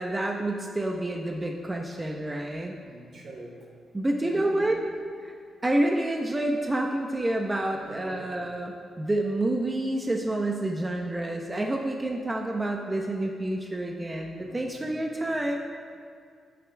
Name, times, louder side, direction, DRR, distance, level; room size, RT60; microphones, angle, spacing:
voice 1, 0.0-2.7 3.9-4.8 5.2-5.3 5.6-15.6, right 1 dB, 20° right, 1 dB, 1.2 m, -28 dB
voice 2, 2.8-3.6 4.2-4.7 7.7-8.3 14.4-15.2, right 1 dB, 55° right, -2 dB, 4.3 m, -44 dB
28.0 x 9.9 x 3.6 m, 2.3 s
cardioid pair, 110°, 0 cm